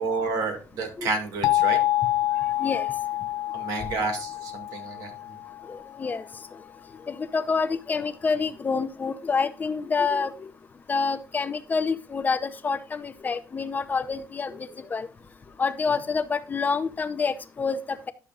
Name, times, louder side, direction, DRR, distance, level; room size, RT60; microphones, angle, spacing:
voice 1, 0.0-1.8 3.5-5.1, right 4 dB, 80° right, 4 dB, 2.3 m, -30 dB
sound 1, 1.4-6.1, left 14 dB, 70° left, 0.4 m, -27 dB
voice 2, 5.7-6.2 7.1-10.5 10.9-15.1 15.6-18.1, left 5 dB, 25° left, 10 dB, 0.7 m, -27 dB
11.5 x 6.8 x 2.5 m, 0.35 s
cardioid pair, 120°, 6 cm